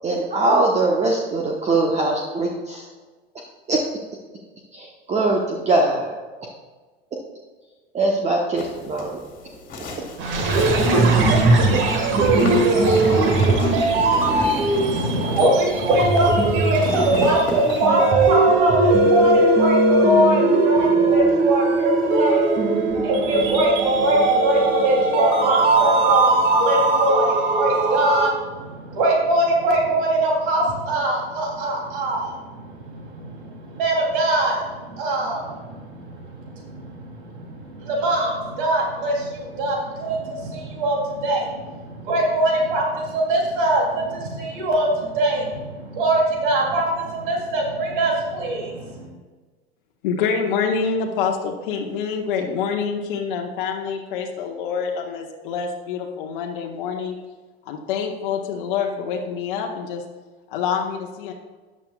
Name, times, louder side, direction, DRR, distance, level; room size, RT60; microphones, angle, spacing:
voice 1, 0.0-2.8 3.3-3.4 3.7-3.8 4.7-6.2 7.9-9.2 11.7-11.8, right 2 dB, 20° right, 0 dB, 1.1 m, -21 dB
sound 1, 8.6-17.9, left 1 dB, 25° left, 2.3 m, -32 dB
sound 2, 10.2-28.3, right 2 dB, 40° right, 1.8 m, -19 dB
voice 2, 14.7-22.4 23.0-49.1, right 1 dB, 55° right, -1 dB, 3.2 m, -22 dB
voice 3, 50.0-57.2 57.7-60.0 60.5-61.3, left 6 dB, 55° left, 2 dB, 1.2 m, -26 dB
13.5 x 9.7 x 2.4 m, 1.3 s
figure-of-eight pair, 85°, 31 cm